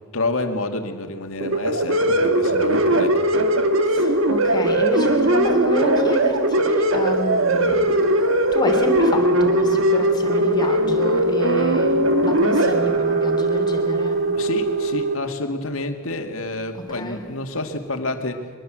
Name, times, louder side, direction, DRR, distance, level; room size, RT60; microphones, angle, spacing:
voice 1, 0.1-3.2 14.3-18.4, left 2 dB, 75° left, 5 dB, 2.2 m, -28 dB
sound 1, 1.4-15.1, right 1 dB, 70° right, 1.6 m, -19 dB
voice 2, 3.8-7.9 8.5-14.2 16.7-17.2, equal, 20° left, 3 dB, 3.3 m, -28 dB
23.0 x 21.5 x 7.6 m, 1.6 s
head